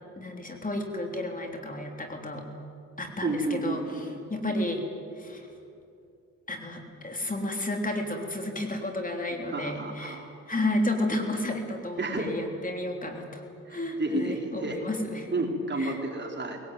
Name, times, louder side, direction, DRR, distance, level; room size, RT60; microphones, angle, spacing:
voice 1, 0.2-2.5 3.0-4.8 5.2-5.5 6.5-10.2 10.5-13.4 13.7-15.3 15.8-16.0, left 1 dB, 25° left, 3 dB, 3.5 m, -32 dB
voice 2, 3.2-4.2 9.5-10.3 12.0-12.3 13.7-14.8 15.3-16.6, right 2 dB, 35° right, 1 dB, 3.7 m, -31 dB
21.0 x 19.0 x 9.2 m, 2.5 s
cardioid pair, 80°, 30 cm